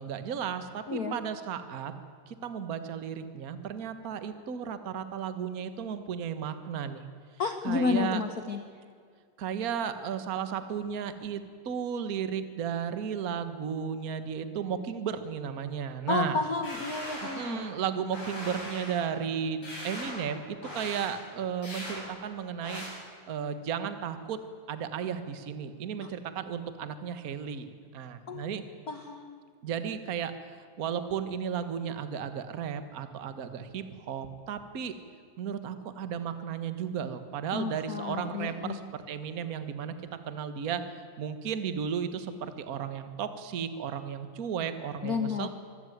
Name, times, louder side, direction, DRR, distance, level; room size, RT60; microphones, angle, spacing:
voice 1, 0.0-1.9 2.3-7.0 7.6-8.2 9.4-16.4 17.2-22.8 23.3-24.4 24.7-28.6 29.6-30.3 30.8-34.9 35.4-39.9 40.2-40.8 41.2-45.5, right 7 dB, 45° right, 10 dB, 1.2 m, -34 dB
voice 2, 7.4-8.6 16.1-17.6 26.0-26.1 28.3-28.4 28.9-29.4 37.5-38.8 45.0-45.5, left 5 dB, 85° left, 7 dB, 0.8 m, -31 dB
sound 1, 16.6-17.7 18.1-19.1 19.6-20.3 20.6-21.1 21.6-22.0 22.6-22.9, left 1 dB, 35° left, 7.5 m, -40 dB
24.5 x 15.5 x 9.4 m, 2.2 s
omnidirectional pair, 3.5 m